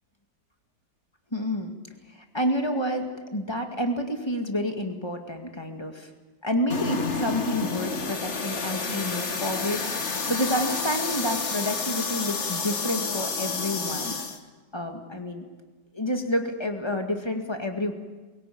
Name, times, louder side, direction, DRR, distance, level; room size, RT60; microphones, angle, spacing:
voice 1, 1.3-1.7 2.1-6.1 6.4-10.0 10.3-14.2 14.7-15.4 15.9-17.9, equal, 15° left, 4 dB, 1.9 m, -29 dB
sound 1, 6.7-14.4, left 4 dB, 40° left, 1.6 m, -30 dB
23.0 x 17.0 x 8.7 m, 1.3 s
omnidirectional pair, 2.0 m